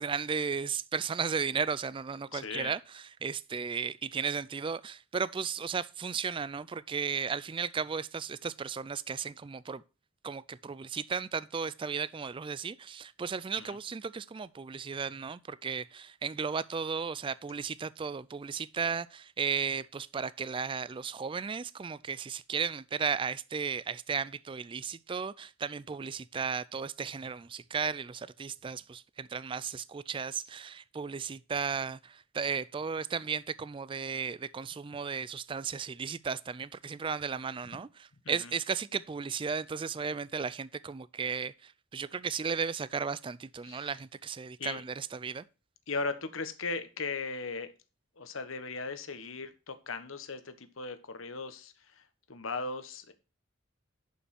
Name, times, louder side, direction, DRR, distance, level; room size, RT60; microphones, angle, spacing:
voice 1, 0.0-9.8 10.2-45.4, right 6 dB, 25° right, 0.3 m, -35 dB
voice 2, 2.3-2.7 13.6-13.8 38.2-38.5 43.6-43.9 44.6-44.8 45.9-47.7 48.2-53.1, left 4 dB, 75° left, 1.2 m, -38 dB
11.0 x 5.5 x 4.3 m
head